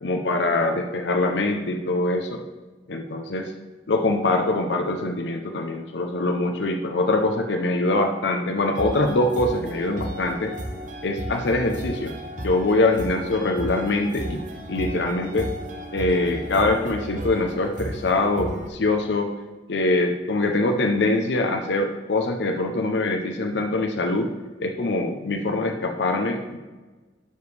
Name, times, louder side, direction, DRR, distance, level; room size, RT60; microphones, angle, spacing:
voice 1, 0.0-2.4 2.9-3.5 3.9-10.6 11.0-14.4 14.7-15.5 15.9-19.3 19.7-24.3 24.6-26.6, left 2 dB, 75° left, 4 dB, 0.6 m, -23 dB
sound 1, 8.7-18.7, equal, 45° right, 0.9 m, -34 dB
12.0 x 4.9 x 3.3 m, 1.3 s
head